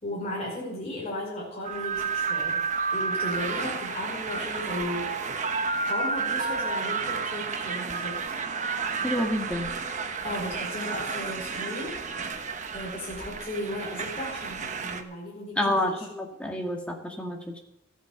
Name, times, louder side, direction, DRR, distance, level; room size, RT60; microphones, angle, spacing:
voice 1, 0.0-2.6 2.9-5.1 5.8-8.2 10.2-12.0 12.7-16.1, left 1 dB, 35° left, -5 dB, 4.7 m, -35 dB
sound 1, 1.6-15.0, right 4 dB, 40° right, 1.1 m, -31 dB
voice 2, 9.0-9.7 15.6-17.6, left 1 dB, 5° left, 1 dB, 2.0 m, -28 dB
14.5 x 9.2 x 7.0 m, 0.82 s
head